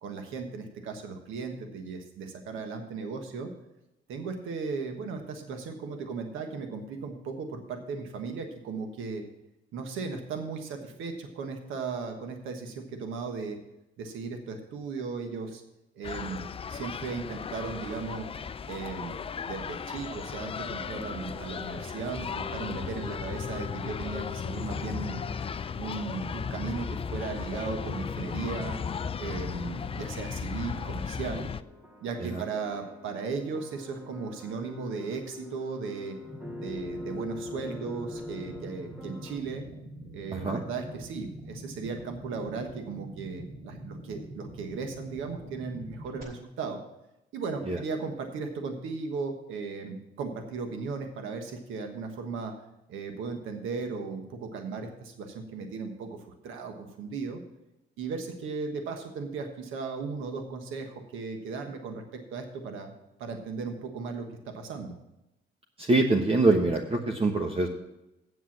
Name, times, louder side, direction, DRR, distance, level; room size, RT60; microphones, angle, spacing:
voice 1, 0.0-3.5 4.1-9.2 9.7-13.6 14.0-15.6 15.9-18.3 18.7-25.2 25.8-28.8 29.2-31.5 32.0-36.2 36.6-39.6 40.1-46.8 47.3-52.5 52.9-57.4 58.0-62.9 63.2-64.9, right 4 dB, 90° right, 5 dB, 1.3 m, -36 dB
sound 1, 16.0-31.6, left 6 dB, 30° left, 0.4 m, -36 dB
sound 2, 20.8-39.4, left 3 dB, 10° right, 1.7 m, -45 dB
sound 3, 36.2-46.2, right 1 dB, 55° right, 4.7 m, -44 dB
voice 2, 40.3-40.6 47.7-47.8 65.8-67.7, right 2 dB, 30° right, 1 dB, 1.1 m, -24 dB
8.0 x 7.8 x 7.3 m, 0.91 s
cardioid pair, 90°, 20 cm